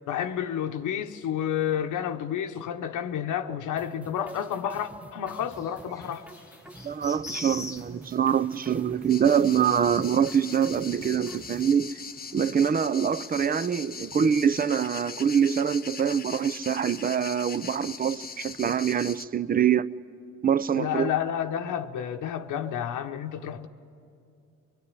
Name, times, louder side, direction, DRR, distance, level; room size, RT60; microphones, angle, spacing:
voice 1, 0.1-6.2 20.7-23.7, left 9 dB, 80° left, 0.9 m, -30 dB
sound 1, 3.8-11.8, right 1 dB, 5° right, 0.9 m, -48 dB
sound 2, 5.3-11.4, left 2 dB, 10° left, 1.5 m, -44 dB
voice 2, 6.8-12.0 12.3-19.9 20.4-21.1, right 8 dB, 30° right, 0.5 m, -24 dB
sound 3, 9.1-19.2, left 5 dB, 30° left, 1.0 m, -40 dB
24.0 x 22.0 x 9.8 m
cardioid pair, 90°, 30 cm